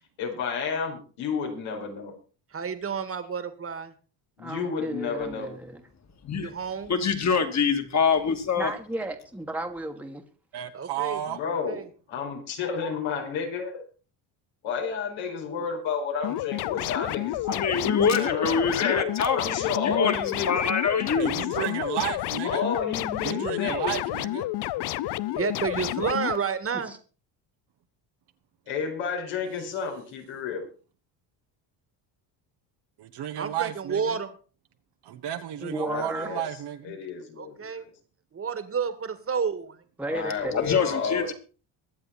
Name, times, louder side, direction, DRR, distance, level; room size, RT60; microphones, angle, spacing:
voice 1, 0.2-2.1 4.4-5.5 11.3-11.8 12.1-13.8 14.6-19.1 19.3-20.8 21.1-21.2 21.5-21.7 22.4-23.9 28.7-30.6 35.8-36.4 36.8-37.9 40.1-41.3, left 6 dB, 80° left, 2 dB, 4.9 m, -31 dB
voice 2, 2.5-3.9 6.4-6.9 10.7-11.8 25.3-26.9 33.4-34.3 37.4-37.9 38.3-39.8, right 6 dB, 30° right, 11 dB, 2.0 m, -30 dB
voice 3, 4.4-5.8 8.6-10.2 24.9-25.0 26.7-27.0 35.6-36.3 40.0-40.5, right 1 dB, 5° right, 3 dB, 1.7 m, -34 dB
voice 4, 6.9-8.7 17.5-19.4 19.8-20.2 20.5-21.5 40.5-41.3, left 5 dB, 35° left, 6 dB, 2.6 m, -24 dB
voice 5, 10.5-11.4 21.1-22.7 23.2-24.5 33.0-34.2 35.0-37.0, right 11 dB, 60° right, 6 dB, 1.3 m, -33 dB
sound 1, 16.2-26.4, left 16 dB, 60° left, 0.7 m, -30 dB
23.0 x 7.9 x 4.2 m, 0.37 s
cardioid pair, 110°, 45 cm